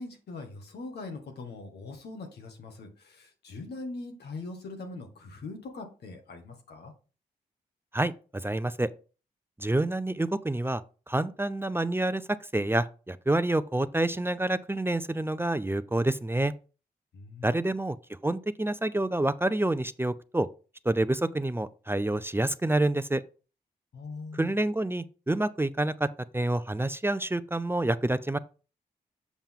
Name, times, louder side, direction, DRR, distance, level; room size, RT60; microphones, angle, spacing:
voice 1, 0.0-6.9 17.1-17.6 23.9-24.6, left 3 dB, 85° left, 1.6 m, -41 dB
voice 2, 7.9-8.9 9.6-10.8 11.1-12.2 12.5-16.5 17.4-18.0 18.2-20.5 20.9-23.2 24.3-26.1 26.3-28.4, right 1 dB, 15° right, 0.5 m, -28 dB
7.2 x 5.5 x 3.6 m
supercardioid pair, 45°, 17 cm